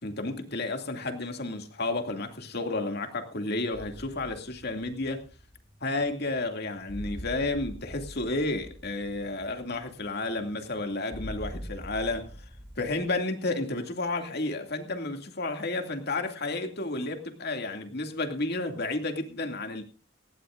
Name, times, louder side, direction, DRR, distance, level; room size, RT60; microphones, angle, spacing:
voice 1, 0.0-5.2 5.8-12.3 12.8-19.8, left 2 dB, 55° left, 2.4 m, -31 dB
sound 1, 3.7-13.1, equal, 5° right, 1.4 m, -44 dB
19.0 x 16.5 x 2.5 m
head